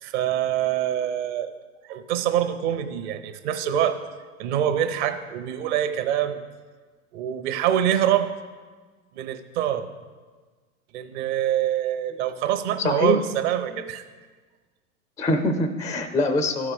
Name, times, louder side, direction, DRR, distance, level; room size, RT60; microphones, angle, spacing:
voice 1, 0.0-1.5 1.9-4.0 4.4-6.4 7.1-8.3 9.1-9.9 10.9-14.0, right 10 dB, 50° right, 8 dB, 1.0 m, -25 dB
voice 2, 12.8-13.2 15.2-16.7, left 1 dB, 10° left, 8 dB, 0.4 m, -23 dB
14.0 x 4.9 x 6.6 m, 1.4 s
hypercardioid pair, 100°, 45 cm